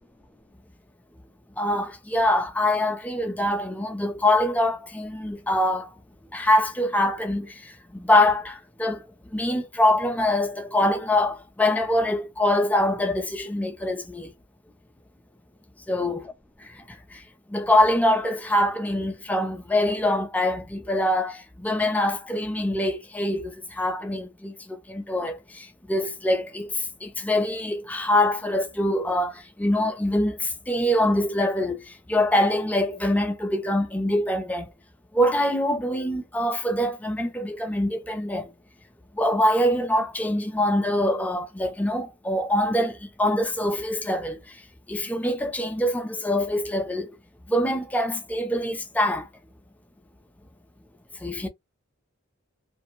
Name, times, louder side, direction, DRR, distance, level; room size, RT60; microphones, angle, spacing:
voice 1, 1.6-5.9 6.3-9.0 9.3-14.3 15.9-16.3 16.9-17.2 17.5-34.7 35.1-38.5 39.1-44.4 44.9-47.1 47.5-49.3 51.2-51.5, left 1 dB, 5° left, 0.4 m, -24 dB
2.5 x 2.3 x 2.6 m
head